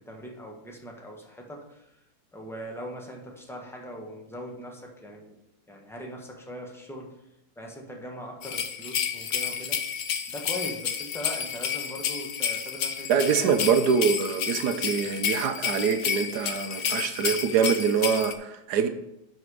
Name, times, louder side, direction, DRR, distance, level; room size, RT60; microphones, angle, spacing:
voice 1, 0.1-1.9 2.3-5.3 5.7-7.1 7.6-9.8 10.3-13.7, equal, ahead, 0 dB, 1.0 m, -40 dB
sound 1, 8.4-18.3, left 7 dB, 70° left, 0.6 m, -31 dB
voice 2, 13.1-18.9, right 6 dB, 70° right, 8 dB, 1.1 m, -24 dB
10.5 x 4.2 x 4.8 m, 0.86 s
omnidirectional pair, 1.9 m